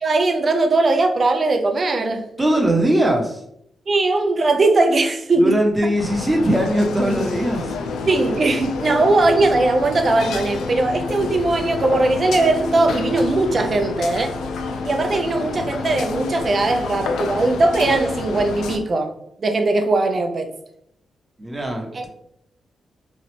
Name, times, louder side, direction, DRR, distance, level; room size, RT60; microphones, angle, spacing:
voice 1, 0.0-2.2 3.9-5.5 8.1-14.4 14.8-19.1 19.4-20.5 21.9-22.1, right 2 dB, 45° right, 5 dB, 0.5 m, -19 dB
voice 2, 2.4-3.4 5.4-7.7 21.4-22.1, right 1 dB, 20° right, 1 dB, 0.9 m, -20 dB
sound 1, 6.0-18.8, left 4 dB, 90° left, 0.4 m, -28 dB
3.0 x 2.4 x 3.2 m, 0.73 s
cardioid pair, 70°, 0 cm